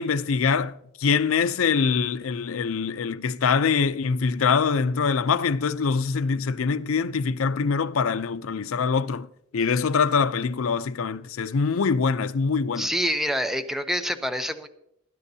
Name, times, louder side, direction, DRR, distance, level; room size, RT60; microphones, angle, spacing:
voice 1, 0.0-9.3 9.5-12.9, left 5 dB, 80° left, 0.5 m, -24 dB
voice 2, 12.8-14.7, equal, ahead, 0.7 m, -26 dB
19.5 x 10.5 x 2.7 m
head